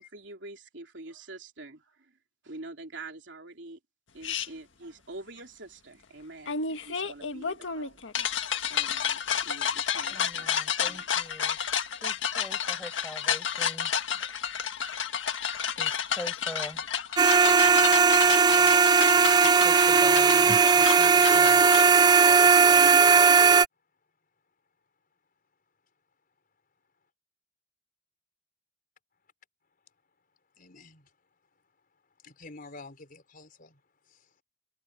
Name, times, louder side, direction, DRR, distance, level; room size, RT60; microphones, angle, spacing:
voice 1, 0.0-2.1 2.4-3.8 4.1-8.0 8.7-10.5 10.8-11.1, right 2 dB, 70° right, 3.4 m, -45 dB
sound 1, 4.2-4.5 6.5-21.9, left 7 dB, 85° left, 1.7 m, -31 dB
voice 2, 10.1-11.6 12.0-13.9 15.7-16.8 19.4-21.6, equal, 5° left, 5.9 m, -43 dB
sound 2, 17.2-23.7, right 5 dB, 20° right, 0.4 m, -18 dB
voice 3, 30.6-31.1 32.2-33.8 34.1-34.3, left 3 dB, 50° left, 4.7 m, -49 dB
head